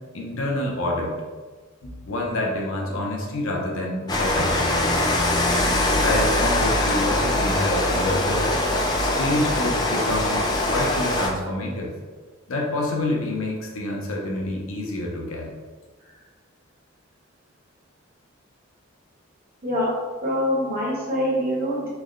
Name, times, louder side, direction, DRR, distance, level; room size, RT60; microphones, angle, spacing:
voice 1, 0.1-1.2 1.8-4.7 5.9-8.5 9.0-11.9 12.5-15.5, left 1 dB, 75° left, -1 dB, 0.7 m, -27 dB
Rain, 4.1-11.3, left 1 dB, 20° left, 0.3 m, -22 dB
voice 2, 20.2-21.9, equal, 45° right, -6 dB, 1.1 m, -24 dB
3.4 x 2.1 x 3.6 m, 1.4 s
head